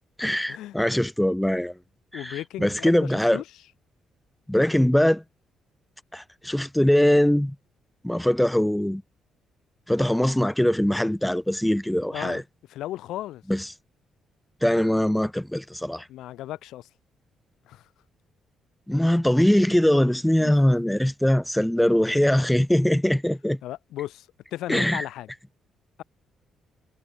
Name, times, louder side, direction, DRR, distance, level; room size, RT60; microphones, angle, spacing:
voice 1, 0.2-1.7 2.1-3.4 4.5-5.2 6.1-7.6 8.0-9.0 9.9-12.4 13.5-13.6 14.6-16.1 18.9-23.6 24.7-25.0, left 1 dB, 5° left, 2.2 m, -22 dB
voice 2, 2.1-3.4 12.1-12.4 12.7-13.4 16.1-16.9 17.6-17.9 20.4-20.5 23.6-25.3, left 14 dB, 85° left, 4.3 m, -35 dB
cardioid pair, 90°, 0 cm